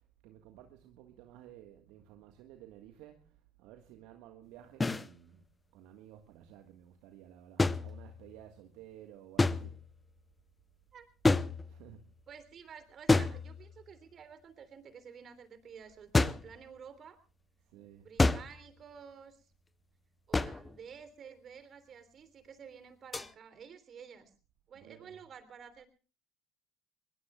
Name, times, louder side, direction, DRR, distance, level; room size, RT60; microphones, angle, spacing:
voice 1, 0.2-5.4 5.7-9.8 11.7-12.0 17.7-18.1 24.7-25.2, right 11 dB, 65° right, 1.6 m, -54 dB
sound 1, 4.8-5.1 7.6-8.4 9.4-10.0 11.2-12.0 13.1-13.9 16.1-16.6 18.2-18.7 20.3-20.8 23.1-23.3, left 3 dB, 15° left, 0.8 m, -29 dB
voice 2, 12.3-17.2 18.0-19.5 20.3-24.3 24.7-25.9, right 7 dB, 40° right, 3.4 m, -51 dB
24.0 x 21.5 x 2.4 m
hypercardioid pair, 65°, 0 cm